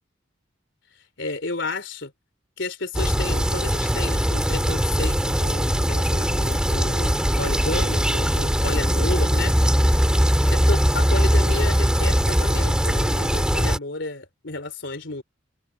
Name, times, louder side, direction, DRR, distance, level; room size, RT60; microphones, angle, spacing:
voice 1, 1.2-2.1 2.6-9.5 10.5-15.2, left 3 dB, 60° left, 3.7 m, -32 dB
sound 1, 2.9-13.8, equal, 5° right, 2.6 m, -21 dB
head